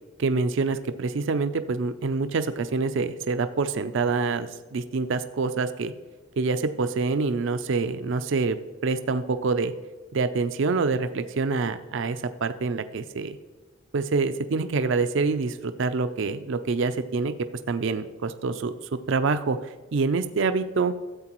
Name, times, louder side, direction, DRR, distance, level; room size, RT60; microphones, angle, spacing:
voice 1, 0.2-5.9 6.4-8.6 8.8-9.7 10.1-13.4 13.9-17.3 17.7-20.9, right 4 dB, 55° right, 10 dB, 0.4 m, -26 dB
13.5 x 8.0 x 3.0 m, 1.3 s
head